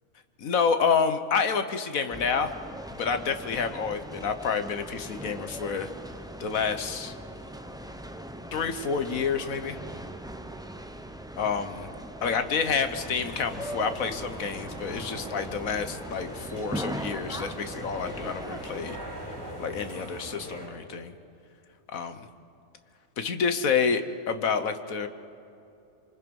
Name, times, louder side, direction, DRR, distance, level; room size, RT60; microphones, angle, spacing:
voice 1, 0.4-2.5 2.9-5.9 6.4-7.1 8.5-9.8 11.4-11.9 12.2-19.0 19.6-21.1 21.9-22.3 23.2-25.1, left 6 dB, 65° left, 9 dB, 1.5 m, -28 dB
sound 1, 2.1-19.0, right 1 dB, 5° right, 0.5 m, -40 dB
sound 2, 12.9-20.7, equal, 10° left, 3.7 m, -41 dB
27.0 x 24.5 x 5.4 m, 2.7 s
omnidirectional pair, 1.6 m